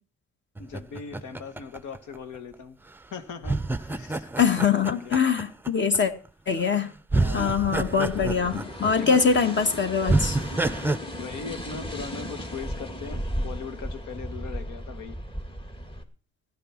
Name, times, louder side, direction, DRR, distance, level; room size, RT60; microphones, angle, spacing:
voice 1, 0.6-2.8 3.1-4.3 4.7-5.2 7.1-7.6 9.0-9.2 11.2-15.2, left 5 dB, 80° left, 9 dB, 1.8 m, -39 dB
sound 1, 0.6-2.5 3.4-6.0 6.6-6.8 7.1-9.2 9.5-9.6 10.1-11.0, right 2 dB, 5° right, 0.6 m, -28 dB
voice 2, 4.4-6.1 6.5-6.9 7.3-10.4, left 6 dB, 40° left, 9 dB, 1.8 m, -23 dB
sound 2, 7.1-16.0, equal, 15° left, 1.9 m, -36 dB
14.0 x 10.5 x 6.0 m, 0.38 s
cardioid pair, 90°, 30 cm